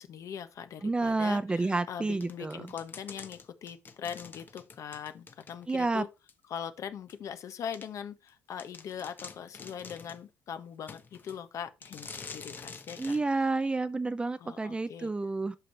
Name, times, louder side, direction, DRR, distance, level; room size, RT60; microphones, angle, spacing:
voice 1, 0.0-6.1 6.5-13.5 14.4-15.1, left 8 dB, 50° left, 1.2 m, -41 dB
voice 2, 0.8-2.6 5.7-6.0 13.0-15.6, right 3 dB, 15° right, 0.6 m, -30 dB
sound 1, 2.2-5.9 6.3-6.4 7.1-7.2 7.7-7.9 8.3-8.4 8.6-10.2 10.9-11.4 11.8-13.2, left 5 dB, 30° left, 1.0 m, -47 dB
8.3 x 5.6 x 4.3 m
cardioid pair, 115°, 7 cm